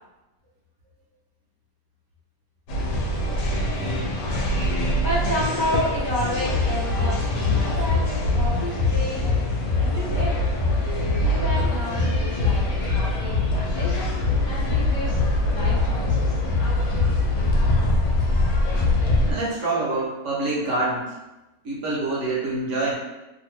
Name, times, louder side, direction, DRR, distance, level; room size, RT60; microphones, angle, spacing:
sound 1, 2.7-19.3, left 2 dB, 80° left, 1.1 m, -23 dB
voice 1, 4.5-9.3 9.8-10.4 11.1-14.1 14.4-15.2 15.5-16.4, equal, 30° left, -9 dB, 0.5 m, -31 dB
voice 2, 19.3-21.2 21.6-22.9, right 2 dB, 60° right, -5 dB, 1.1 m, -26 dB
2.8 x 2.6 x 3.1 m, 1.0 s
omnidirectional pair, 1.5 m